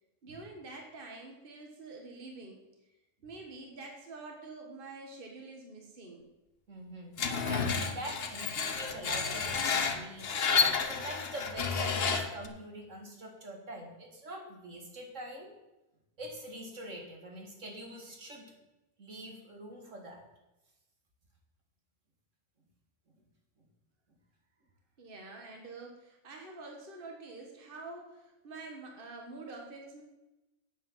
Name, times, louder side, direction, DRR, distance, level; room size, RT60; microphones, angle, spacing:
voice 1, 0.2-2.6 3.2-6.3 25.0-30.0, right 3 dB, 45° right, 1 dB, 1.7 m, -47 dB
voice 2, 6.7-10.3 10.9-15.5 16.2-18.5 19.0-20.2, right 1 dB, 70° right, 2 dB, 2.4 m, -44 dB
Screech, 7.2-12.5, left 5 dB, 50° left, 1.2 m, -31 dB
8.9 x 8.5 x 7.3 m, 1.0 s
omnidirectional pair, 1.3 m